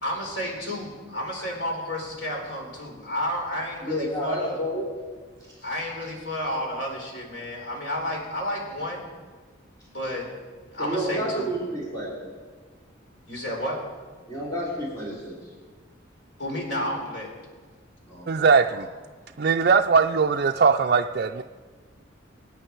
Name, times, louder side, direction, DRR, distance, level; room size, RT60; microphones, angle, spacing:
voice 1, 0.0-4.6 5.6-9.0 9.9-10.3 10.7-11.5 13.3-13.8 16.4-17.3 18.5-18.8, left 1 dB, 60° left, 0 dB, 3.9 m, -31 dB
voice 2, 3.8-4.9 5.4-5.5 10.8-12.2 14.3-15.5 18.1-18.3, equal, 20° left, -6 dB, 3.7 m, -30 dB
voice 3, 18.3-18.9 19.4-21.4, right 5 dB, 50° right, 3 dB, 0.4 m, -20 dB
25.0 x 9.0 x 4.6 m, 1.5 s
head